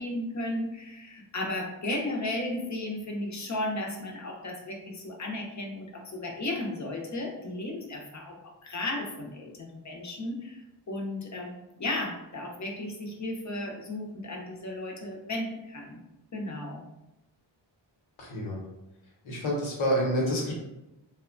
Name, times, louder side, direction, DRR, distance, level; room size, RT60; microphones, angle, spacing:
voice 1, 0.0-10.6 10.9-16.0 16.3-16.8, left 1 dB, 40° left, 0 dB, 0.7 m, -34 dB
voice 2, 18.2-18.6 19.2-20.5, equal, 85° left, -3 dB, 1.0 m, -28 dB
2.8 x 2.1 x 2.5 m, 0.93 s
cardioid pair, 65°, 47 cm